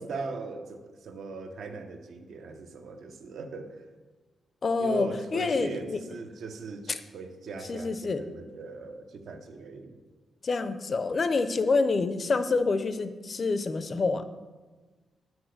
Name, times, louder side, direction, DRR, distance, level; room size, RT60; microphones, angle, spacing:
voice 1, 0.0-3.9 4.8-10.0, right 3 dB, 70° right, 6 dB, 0.8 m, -39 dB
voice 2, 4.6-6.0 7.7-8.2 10.4-14.2, left 4 dB, 35° left, 11 dB, 0.5 m, -27 dB
6.2 x 5.6 x 6.5 m, 1.3 s
wide cardioid pair, 145°, 0 cm